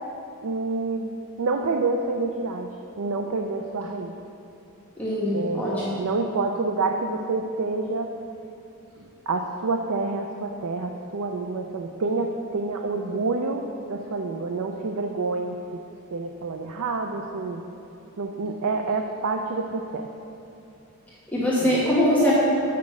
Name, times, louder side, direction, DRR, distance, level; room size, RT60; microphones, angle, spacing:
voice 1, 0.4-1.1 1.4-2.7 3.0-4.1 5.3-8.1 9.0-15.8 16.1-17.6 18.2-20.1 21.6-21.8, right 3 dB, 85° right, 3 dB, 0.5 m, -28 dB
voice 2, 5.0-6.0 21.3-22.3, left 1 dB, 10° left, -8 dB, 1.2 m, -22 dB
8.6 x 5.9 x 6.0 m, 2.7 s
head